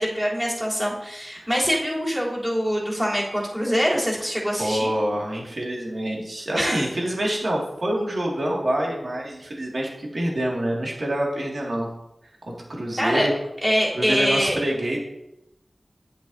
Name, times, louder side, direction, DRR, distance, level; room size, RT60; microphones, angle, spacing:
voice 1, 0.0-4.9 6.6-6.8 13.0-13.3 13.6-14.6, equal, 10° right, -6 dB, 3.3 m, -24 dB
voice 2, 4.6-11.9 12.5-13.3 13.9-15.0, right 1 dB, 70° right, -2 dB, 2.1 m, -26 dB
10.0 x 7.8 x 2.7 m, 0.85 s
wide cardioid pair, 60°, 0 cm